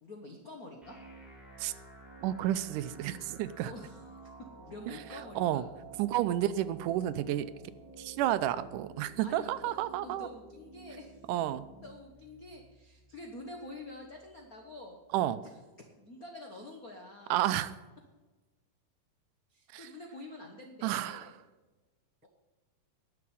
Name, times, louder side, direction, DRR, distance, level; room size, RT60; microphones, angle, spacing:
voice 1, 0.0-1.0 3.6-4.0 4.6-5.6 9.2-9.7 10.0-11.2 11.8-15.0 15.4-15.5 15.8-17.4 19.5-21.3, left 2 dB, 75° left, 2 dB, 0.8 m, -47 dB
sound 1, 0.8-14.8, right 2 dB, ahead, 3.4 m, -53 dB
voice 2, 2.2-3.7 5.4-5.6 6.0-7.5 8.0-10.3 11.3-11.6 15.1-15.4 17.3-17.7 19.7-19.9 20.8-21.3, right 13 dB, 85° right, 14 dB, 2.1 m, -31 dB
11.0 x 7.0 x 8.5 m, 1.2 s
omnidirectional pair, 3.7 m